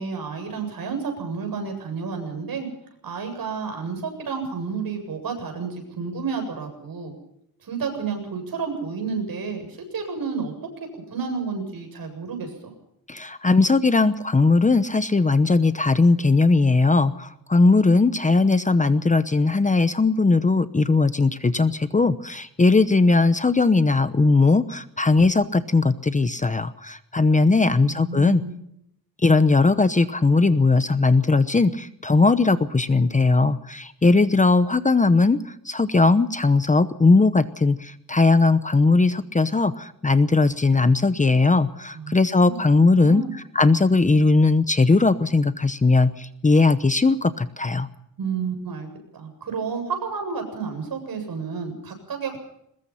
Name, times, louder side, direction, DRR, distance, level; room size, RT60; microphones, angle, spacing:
voice 1, 0.0-2.7 3.0-7.1 7.6-10.5 11.1-12.7 27.6-28.5 41.9-42.6 42.9-43.3 48.2-48.9 49.1-52.4, right 5 dB, 70° right, 5 dB, 7.8 m, -31 dB
voice 2, 13.1-28.4 29.2-35.4 35.7-43.2 43.5-47.9, left 3 dB, 20° left, 13 dB, 0.9 m, -19 dB
23.0 x 21.0 x 5.7 m, 0.76 s
wide cardioid pair, 160°, 36 cm